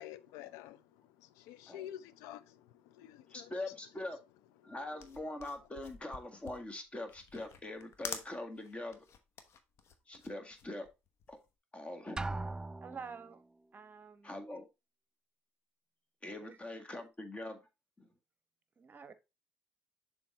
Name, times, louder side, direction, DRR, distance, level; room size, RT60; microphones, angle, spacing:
voice 1, 0.0-3.5 4.6-5.0, left 12 dB, 80° left, 0.5 m, -50 dB
voice 2, 3.3-4.2 4.6-9.0 10.1-10.9 11.3-11.4 11.7-12.5 14.2-14.7 16.2-17.6 18.0-18.1, left 2 dB, 25° left, 1.7 m, -43 dB
sound 1, 4.9-11.5, left 6 dB, 55° left, 1.1 m, -48 dB
Drum, 12.2-13.4, right 2 dB, 15° right, 0.3 m, -39 dB
voice 3, 12.8-13.4 13.7-14.4 16.4-16.6 18.8-19.1, right 6 dB, 35° right, 1.0 m, -48 dB
6.9 x 3.6 x 4.4 m
supercardioid pair, 70°, 5 cm